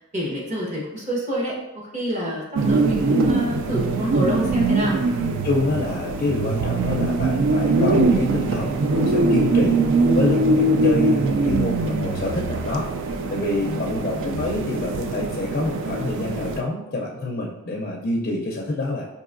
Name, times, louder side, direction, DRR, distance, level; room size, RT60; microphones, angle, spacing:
voice 1, 0.0-5.0 13.6-14.2, equal, 35° right, -4 dB, 1.0 m, -27 dB
sound 1, 2.6-16.6, right 3 dB, 60° right, 0.3 m, -22 dB
voice 2, 5.4-19.1, left 2 dB, 45° left, -2 dB, 0.4 m, -27 dB
4.8 x 2.6 x 2.5 m, 0.97 s
head